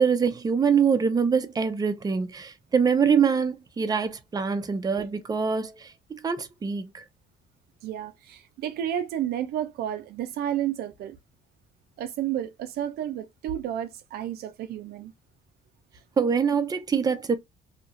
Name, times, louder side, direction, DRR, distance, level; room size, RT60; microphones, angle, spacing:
voice 1, 0.0-7.0 16.2-17.3, right 6 dB, 20° right, 0.6 m, -24 dB
voice 2, 7.8-11.2 12.0-15.1, right 11 dB, 70° right, 0.5 m, -31 dB
2.8 x 2.4 x 2.5 m
cardioid pair, 110°, 17 cm